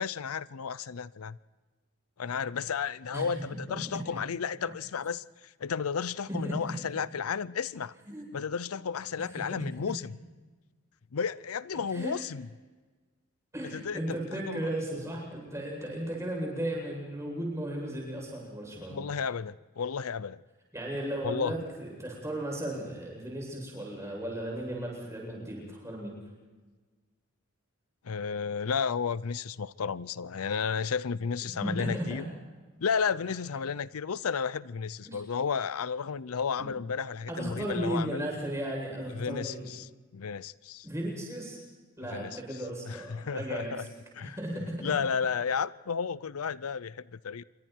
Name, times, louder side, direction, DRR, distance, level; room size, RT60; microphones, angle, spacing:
voice 1, 0.0-1.4 2.2-7.9 8.3-10.0 11.1-12.5 13.7-14.2 14.5-14.7 18.9-20.4 21.2-21.5 28.0-32.2 32.8-38.3 39.2-40.9 42.1-42.4 42.9-43.8 44.2-44.4 44.8-47.4, left 6 dB, 85° left, 0.6 m, -33 dB
voice 2, 3.1-3.6 3.9-4.0 6.3-6.6 8.1-8.2 9.2-9.4 11.9-12.2 13.5-19.0 20.7-26.2 31.6-32.2 35.0-35.2 36.6-36.8 37.3-39.7 40.8-41.6 42.0-43.9 44.2-44.9, right 1 dB, 15° right, 8.0 m, -35 dB
28.0 x 24.0 x 4.6 m
head